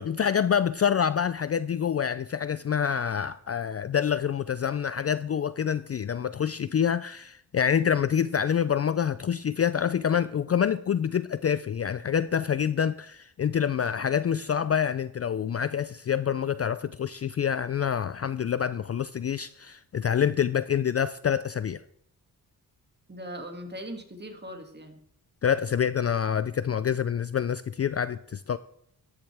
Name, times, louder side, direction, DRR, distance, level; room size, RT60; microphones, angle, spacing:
voice 1, 0.0-21.8 25.4-28.6, left 8 dB, 40° left, 0.4 m, -27 dB
voice 2, 23.1-25.0, equal, 25° right, 2.3 m, -40 dB
14.0 x 10.5 x 3.4 m
cardioid pair, 85°, 39 cm